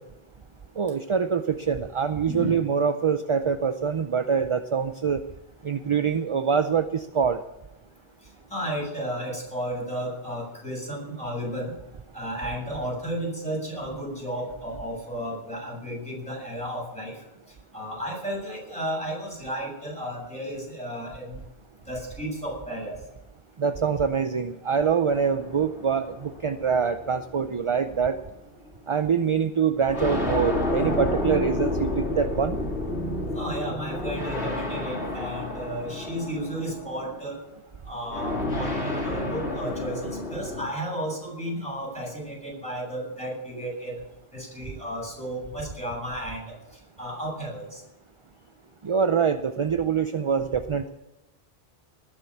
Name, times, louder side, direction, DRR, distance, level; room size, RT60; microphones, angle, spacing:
voice 1, 0.8-5.2 5.6-7.4 23.6-28.2 28.9-32.6 48.8-50.9, right 6 dB, 40° right, 10 dB, 0.5 m, -25 dB
voice 2, 2.3-2.6 8.5-11.7 12.1-17.1 17.7-21.3 21.9-22.9 32.4-32.5 32.9-37.4 37.9-43.9 44.3-46.4 47.0-47.8, equal, 5° left, -4 dB, 7.8 m, -33 dB
sound 1, 25.1-27.8 28.7-28.8 29.9-37.2 38.1-40.7, left 1 dB, 85° left, 3.0 m, -30 dB
20.0 x 7.2 x 8.6 m, 0.96 s
omnidirectional pair, 1.1 m